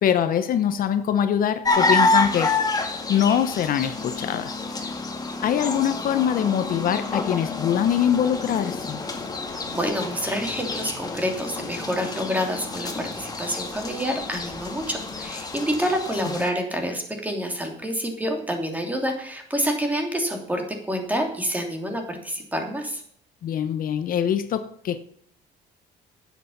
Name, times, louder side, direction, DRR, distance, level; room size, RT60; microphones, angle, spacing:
voice 1, 0.0-4.5 5.4-9.0 23.4-25.0, left 9 dB, 55° left, 0.9 m, -23 dB
sound 1, 1.6-16.5, left 3 dB, 20° left, 2.0 m, -28 dB
voice 2, 9.5-23.0, equal, 10° right, 2.9 m, -28 dB
9.6 x 8.2 x 7.2 m
cardioid pair, 110°, 17 cm